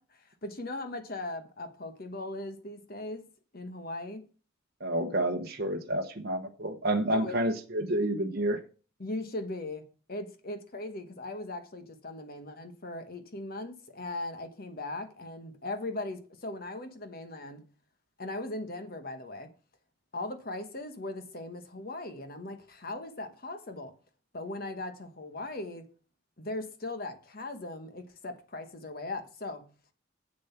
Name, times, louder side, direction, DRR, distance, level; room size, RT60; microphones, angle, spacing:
voice 1, 0.0-3.3 3.5-4.2 7.1-7.4 9.0-17.7 18.2-19.5 20.1-23.9 24.3-25.9 26.4-29.7, left 2 dB, 45° left, 1.2 m, -39 dB
voice 2, 4.8-8.6, right 1 dB, 50° right, 0.9 m, -29 dB
7.9 x 7.0 x 5.8 m
head